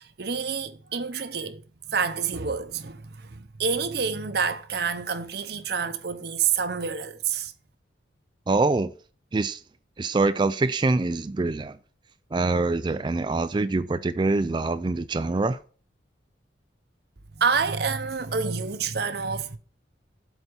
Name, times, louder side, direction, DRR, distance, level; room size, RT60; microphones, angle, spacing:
voice 1, 0.0-1.6 1.9-7.5 17.3-19.6, right 5 dB, 55° right, 0.8 m, -28 dB
voice 2, 8.5-8.9 9.3-9.6 10.0-11.8 12.3-15.6, right 3 dB, 25° right, 0.3 m, -24 dB
8.0 x 4.3 x 6.9 m
head